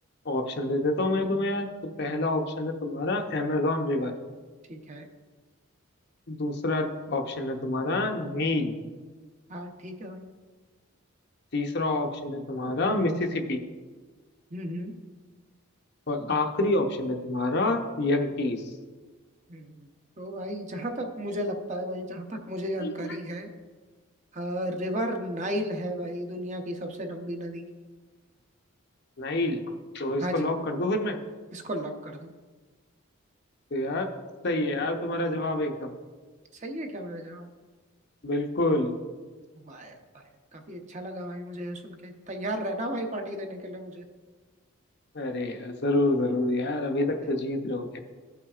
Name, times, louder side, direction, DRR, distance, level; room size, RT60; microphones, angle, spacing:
voice 1, 0.2-1.7 2.0-4.1 6.3-8.7 11.5-13.6 16.1-18.6 22.8-23.2 29.2-29.6 29.9-31.2 33.7-34.1 34.4-35.9 38.2-39.0 45.1-48.0, left 2 dB, 50° left, 4 dB, 0.7 m, -27 dB
voice 2, 4.7-5.1 9.5-10.2 14.5-14.9 19.5-19.9 20.2-23.5 24.3-27.6 30.2-30.5 31.5-32.3 36.5-37.5 39.6-44.0, equal, 35° right, 4 dB, 0.7 m, -34 dB
15.5 x 5.7 x 2.4 m, 1.4 s
head